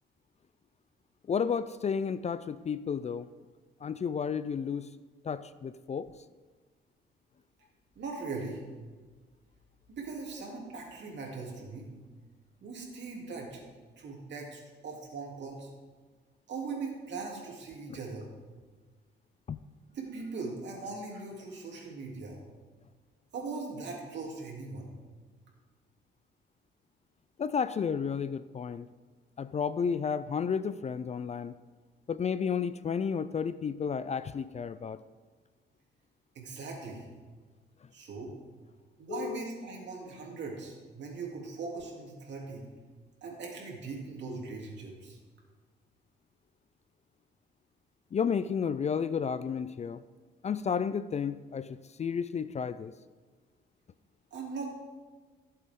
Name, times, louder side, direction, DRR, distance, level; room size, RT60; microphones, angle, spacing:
voice 1, 1.3-3.3 3.8-4.9 5.2-6.1 19.5-19.6 27.4-28.9 29.4-31.5 32.1-35.0 39.1-39.4 48.1-50.0 50.4-52.9, left 6 dB, 35° left, 15 dB, 0.4 m, -32 dB
voice 2, 7.9-8.6 9.9-11.9 12.6-13.6 14.0-15.7 16.5-18.3 19.9-22.4 23.3-24.9 36.3-37.0 37.9-38.3 39.0-42.6 43.2-45.2 54.3-54.7, right 4 dB, 65° right, -1 dB, 3.1 m, -40 dB
15.5 x 7.7 x 3.7 m, 1.4 s
cardioid pair, 90°, 20 cm